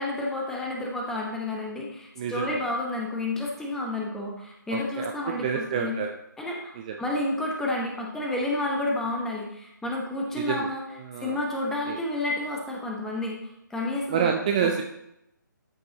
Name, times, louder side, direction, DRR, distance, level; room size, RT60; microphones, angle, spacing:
voice 1, 0.0-5.9 6.4-10.8 11.2-13.4 13.7-14.3 14.6-14.7, left 2 dB, 5° left, -1 dB, 1.0 m, -30 dB
voice 2, 2.2-2.6 4.7-6.1 6.8-7.0 10.3-10.7 11.0-11.4 11.9-12.0 14.1-14.8, right 7 dB, 20° right, 3 dB, 0.5 m, -28 dB
12.5 x 5.2 x 4.0 m, 0.83 s
figure-of-eight pair, 145°, 11 cm